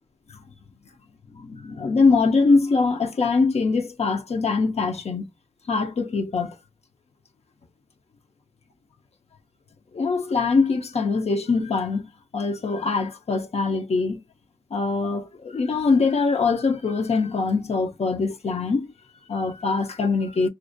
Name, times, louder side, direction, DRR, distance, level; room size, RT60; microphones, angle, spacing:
voice 1, 1.3-5.3 5.7-6.5 9.9-14.2 14.7-20.5, left 4 dB, 80° left, 0.5 m, -23 dB
2.5 x 2.1 x 2.5 m
wide cardioid pair, 80°, 11 cm